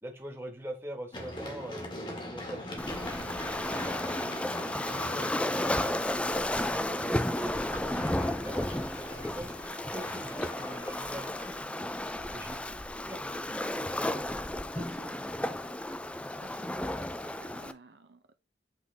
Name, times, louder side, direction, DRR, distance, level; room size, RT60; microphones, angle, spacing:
voice 1, 0.0-4.0 4.6-7.5 8.0-8.9 9.3-9.6 9.9-11.9 12.3-12.6 13.1-14.1, right 1 dB, 15° right, 1.5 m, -44 dB
Run, 1.1-7.0 8.8-10.3, left 1 dB, 25° left, 1.7 m, -42 dB
Waves surf, 2.8-17.7, left 1 dB, 5° left, 0.3 m, -33 dB
sound 1, 3.2-11.6, left 2 dB, 65° left, 3.0 m, -49 dB
voice 2, 14.7-15.1 16.4-16.8 17.4-18.3, right 2 dB, 70° right, 0.7 m, -50 dB
8.2 x 3.9 x 3.4 m
head